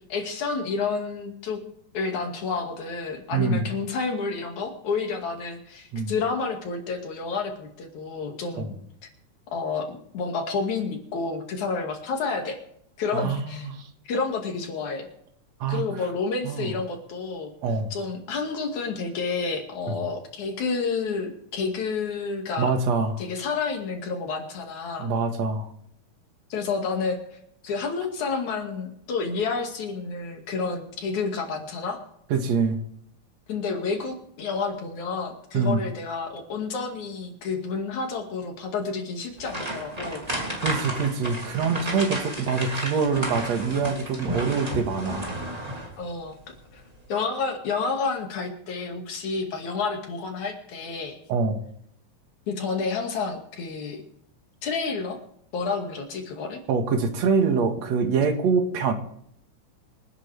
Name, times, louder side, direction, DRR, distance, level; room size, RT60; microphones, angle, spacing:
voice 1, 0.1-1.6 1.9-8.7 9.5-12.6 13.0-13.7 14.1-15.1 15.7-17.5 17.9-22.7 23.2-25.1 26.5-27.2 27.6-32.0 33.5-40.3 46.0-46.3 46.7-46.8 47.1-51.2 52.5-54.0 54.6-55.2 55.5-56.6, left 4 dB, 65° left, 3 dB, 3.5 m, -30 dB
voice 2, 3.3-3.7 5.9-6.1 8.6-8.7 13.1-13.9 15.6-15.9 16.4-16.7 17.6-17.9 19.9-20.0 22.6-23.2 25.0-25.7 32.3-32.8 35.5-35.8 40.6-45.3 51.3-51.6 56.7-58.9, right 5 dB, 60° right, 5 dB, 2.8 m, -25 dB
sound 1, 39.4-46.1 46.4-46.6 47.0-47.1, right 1 dB, 10° right, 2.7 m, -32 dB
26.0 x 10.0 x 3.5 m, 0.70 s
omnidirectional pair, 3.8 m